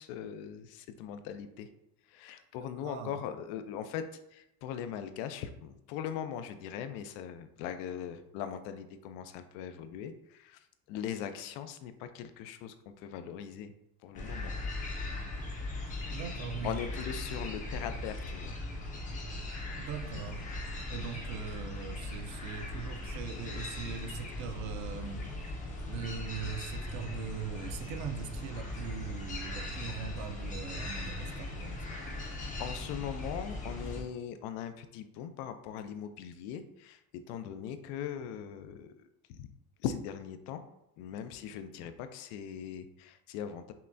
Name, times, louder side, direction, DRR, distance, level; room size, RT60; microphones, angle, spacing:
voice 1, 0.0-1.7 2.1-4.0 4.3-13.7 14.0-14.6 16.1-16.2 16.6-18.6 32.6-39.0 39.3-39.5 39.8-40.6 41.0-43.7, left 9 dB, 85° left, 9 dB, 0.5 m, -40 dB
voice 2, 2.8-3.2 16.1-16.8 19.8-20.5 20.9-25.3 25.9-32.0, right 7 dB, 50° right, 7 dB, 0.4 m, -41 dB
sound 1, 14.1-34.0, left 2 dB, 20° left, 0.5 m, -39 dB
5.6 x 2.2 x 2.5 m, 0.83 s
cardioid pair, 160°, 40 cm